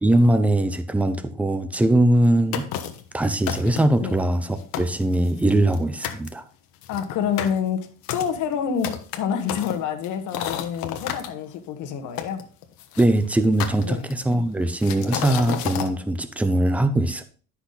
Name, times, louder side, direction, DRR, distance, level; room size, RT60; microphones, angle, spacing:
voice 1, 0.0-2.7 3.1-6.4 13.0-17.2, right 1 dB, 5° right, 0.4 m, -21 dB
sound 1, 2.5-3.1 3.5-4.0 4.4-4.5 4.7-5.8 6.0-6.3 6.8-11.3 12.2-13.1 13.6-14.3 14.8-15.9, left 10 dB, 80° left, 1.2 m, -31 dB
voice 2, 6.9-7.8 8.1-12.4 13.8-14.1, left 7 dB, 60° left, 1.3 m, -27 dB
10.0 x 6.0 x 3.9 m
cardioid pair, 175°, 34 cm